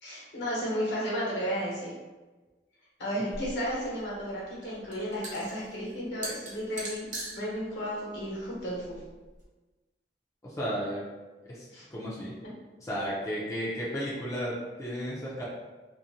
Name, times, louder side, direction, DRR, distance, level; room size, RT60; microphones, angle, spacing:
voice 1, 0.0-1.9 3.0-9.0 11.7-11.8, equal, 70° left, -6 dB, 1.0 m, -33 dB
sound 1, 3.3-9.4, right 2 dB, 45° right, 0.8 m, -42 dB
voice 2, 10.4-11.0 11.5-11.7 11.9-12.4 12.8-15.4, equal, 20° left, -7 dB, 0.4 m, -33 dB
2.6 x 2.1 x 2.8 m, 1.2 s
head